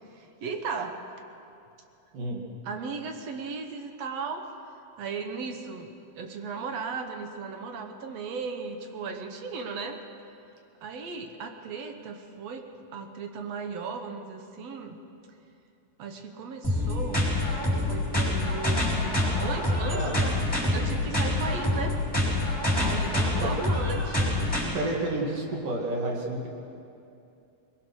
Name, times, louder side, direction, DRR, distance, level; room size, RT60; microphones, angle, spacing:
voice 1, 0.1-1.0 2.6-4.5 5.0-5.9 6.2-10.0 10.8-12.6 12.9-15.0 16.0-17.3 17.8-18.8 19.4-20.4 20.7-22.0 22.8-24.3 24.5-24.6, right 5 dB, 60° right, 5 dB, 2.0 m, -36 dB
voice 2, 2.1-2.4 19.9-20.2 23.2-23.5 24.7-26.5, right 2 dB, 85° right, 0 dB, 3.9 m, -30 dB
sound 1, 16.6-24.6, left 1 dB, ahead, 5.0 m, -26 dB
21.0 x 21.0 x 6.3 m, 2.7 s
omnidirectional pair, 3.8 m